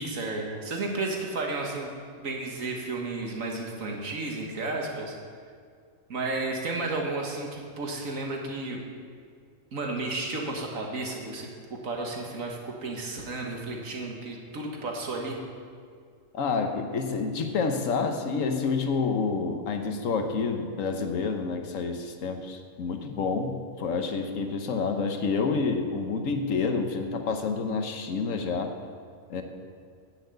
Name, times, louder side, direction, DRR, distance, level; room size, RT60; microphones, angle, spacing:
voice 1, 0.0-1.9 2.2-5.2 6.1-8.8 9.7-15.4, right 2 dB, 85° right, 0 dB, 1.9 m, -32 dB
voice 2, 16.3-28.7 29.3-29.4, left 4 dB, 80° left, 6 dB, 1.4 m, -28 dB
10.5 x 6.5 x 8.0 m, 2.2 s
omnidirectional pair, 1.3 m